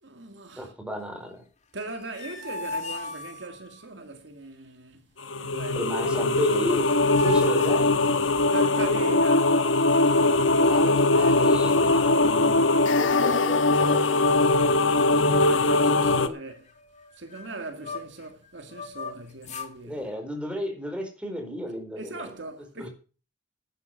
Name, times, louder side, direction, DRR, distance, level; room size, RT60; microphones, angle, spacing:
voice 1, 0.0-0.7 1.7-5.0 5.4-6.0 7.5-7.7 8.5-9.6 15.3-16.6 17.1-20.1 22.0-22.9, right 2 dB, 70° right, 2.1 m, -39 dB
voice 2, 0.6-1.4 5.7-7.9 10.6-12.7 13.0-14.2 16.1-16.3 19.8-22.3 22.8-22.9, equal, 5° right, 4.4 m, -33 dB
sound 1, 1.8-3.8 6.0-6.1 6.4-8.6 9.9-10.8 11.3-11.4 11.7-12.8 13.1-13.4 14.0-14.6 14.9-15.1 15.4-18.3 18.7-19.7, left 2 dB, 40° left, 2.3 m, -39 dB
sound 2, 5.2-16.3, left 2 dB, 90° left, 1.2 m, -21 dB
11.0 x 9.8 x 6.6 m
head